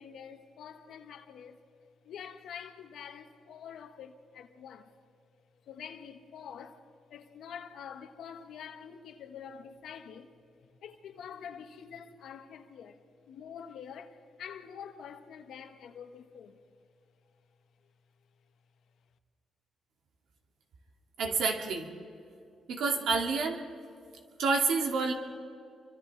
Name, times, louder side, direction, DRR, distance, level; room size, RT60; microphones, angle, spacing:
voice 1, 0.0-1.6 2.0-4.9 5.7-6.9 7.1-10.3 10.8-16.6, left 7 dB, 80° left, 1.8 m, -46 dB
voice 2, 21.2-21.9 22.7-23.6 24.4-25.1, right 4 dB, 80° right, 2.9 m, -28 dB
30.0 x 25.5 x 3.6 m
cardioid pair, 100°, 0 cm